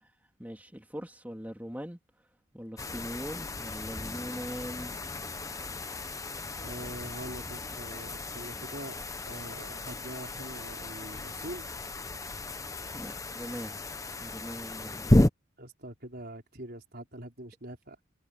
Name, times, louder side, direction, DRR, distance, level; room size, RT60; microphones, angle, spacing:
voice 1, 0.4-2.0 2.5-4.9 12.9-13.8 14.2-15.2, equal, 10° right, 2.7 m, -41 dB
sound 1, 2.8-15.3, left 1 dB, 15° left, 0.8 m, -33 dB
voice 2, 6.6-9.0 9.3-11.7 15.6-18.0, right 1 dB, 50° right, 5.0 m, -43 dB
head